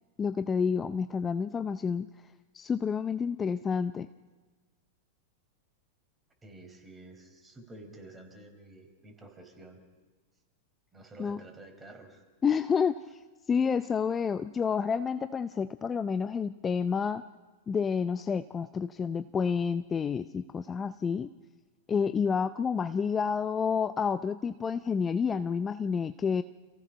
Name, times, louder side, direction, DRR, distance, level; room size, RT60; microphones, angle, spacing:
voice 1, 0.2-2.1 2.5-4.1 11.2-11.4 12.4-13.0 13.5-17.2 17.7-21.3 21.9-26.4, left 6 dB, 20° left, 12 dB, 0.6 m, -29 dB
voice 2, 6.4-9.8 10.9-12.2, right 2 dB, 15° right, 4 dB, 5.0 m, -50 dB
28.5 x 16.0 x 6.0 m, 1.3 s
hypercardioid pair, 100°, 0 cm